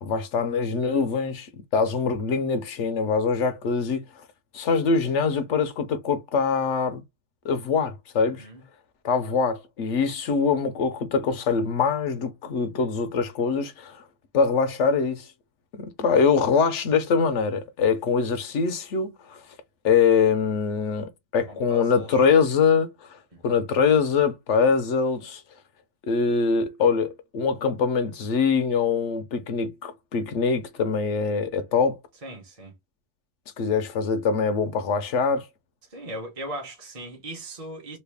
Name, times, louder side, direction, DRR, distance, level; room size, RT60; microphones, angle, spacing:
voice 1, 0.0-4.0 4.5-7.0 7.4-8.5 9.0-14.0 14.3-15.3 15.8-19.4 19.8-23.2 23.4-25.4 26.1-32.0 33.6-35.5, left 5 dB, 60° left, 0.8 m, -23 dB
voice 2, 8.2-8.6 21.5-22.3 23.3-23.5 32.2-32.7 35.9-38.0, right 1 dB, 30° right, 0.8 m, -38 dB
3.2 x 2.3 x 3.4 m
omnidirectional pair, 1.7 m